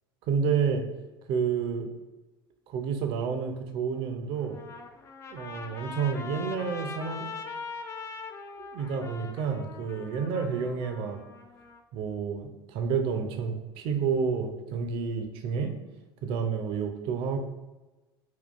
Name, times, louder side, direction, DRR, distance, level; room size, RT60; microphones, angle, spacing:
voice 1, 0.3-0.8 1.3-1.9 2.7-4.6 5.3-7.3 8.6-11.2 11.9-15.7 16.2-17.4, right 6 dB, 45° right, 6 dB, 0.4 m, -30 dB
Trumpet, 4.4-11.8, left 4 dB, 20° left, 0.3 m, -42 dB
3.6 x 2.3 x 2.4 m, 1.1 s
figure-of-eight pair, 75°, 13 cm